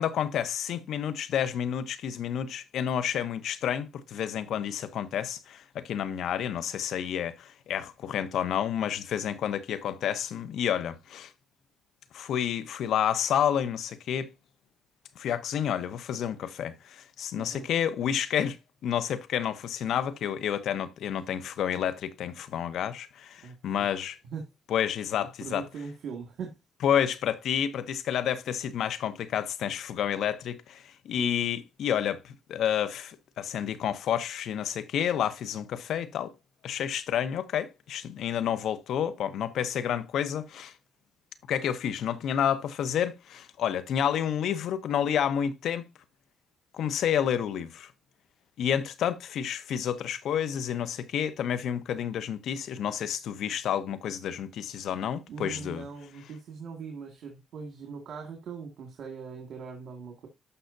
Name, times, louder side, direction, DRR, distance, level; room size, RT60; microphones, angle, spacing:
voice 1, 0.0-11.3 12.1-14.3 15.2-18.6 18.8-24.2 24.7-25.6 26.8-36.3 36.6-40.7 41.5-45.9 46.7-47.9 48.6-55.9, left 9 dB, 75° left, 0.9 m, -30 dB
voice 2, 23.4-23.9 24.3-24.4 25.4-26.6 31.2-31.5 55.3-60.3, right 6 dB, 70° right, 2.1 m, -41 dB
12.5 x 5.7 x 2.7 m
cardioid pair, 90°, 0 cm